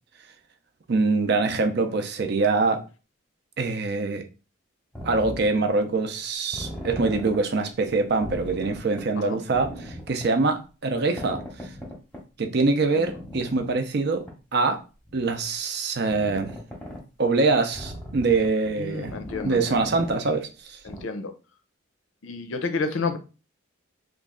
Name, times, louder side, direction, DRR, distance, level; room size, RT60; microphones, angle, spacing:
voice 1, 0.9-2.8 3.6-4.2 5.0-11.4 12.4-14.3 14.5-14.8 15.1-16.6 17.2-19.1 19.4-20.8, right 3 dB, 50° right, 0.5 m, -24 dB
sound 1, 4.9-5.6 6.5-7.4 7.8-7.9 8.2-9.0 9.5-10.3 11.2-12.2 13.0-13.7 14.3-14.4 15.1-15.4 16.1-17.0 17.7-18.7 19.1-20.1 20.6-20.7 20.9-21.0, equal, 5° left, 0.8 m, -38 dB
voice 2, 18.8-19.6 20.8-21.3 22.2-23.2, left 4 dB, 70° left, 0.5 m, -30 dB
3.1 x 2.4 x 3.6 m
head